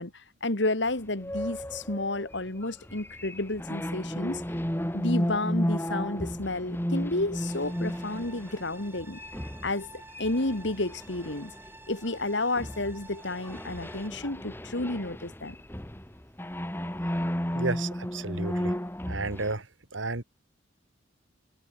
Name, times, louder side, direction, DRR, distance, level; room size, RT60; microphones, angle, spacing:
voice 1, 0.0-4.4 4.9-9.2 9.6-11.5 11.9-15.6, left 2 dB, 70° left, 2.3 m, -31 dB
sound 1, 1.2-12.2 12.6-19.5, equal, 10° left, 2.1 m, -33 dB
sound 2, 7.3-14.1, right 2 dB, 10° right, 3.5 m, -50 dB
voice 2, 17.5-18.7 19.1-19.7 19.9-20.2, right 3 dB, 85° right, 2.3 m, -32 dB
head